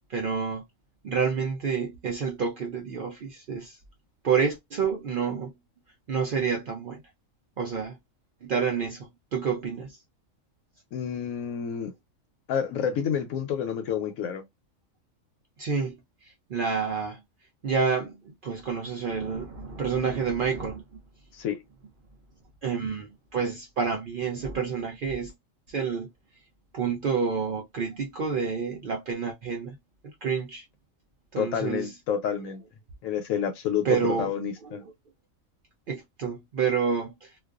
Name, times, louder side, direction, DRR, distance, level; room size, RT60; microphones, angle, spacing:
voice 1, 0.1-0.7 1.0-3.8 4.2-5.6 6.1-7.0 7.6-8.0 8.4-10.0 15.6-17.2 17.6-21.0 22.6-25.3 25.7-26.1 26.7-29.8 30.0-30.6 31.3-31.9 33.8-34.8 35.9-37.3, right 6 dB, 65° right, 0.5 m, -29 dB
voice 2, 10.9-11.9 12.5-14.4 21.3-21.6 31.4-32.6 33.0-33.9 34.2-34.8, left 8 dB, 85° left, 1.0 m, -29 dB
2.4 x 2.2 x 2.3 m
omnidirectional pair, 1.4 m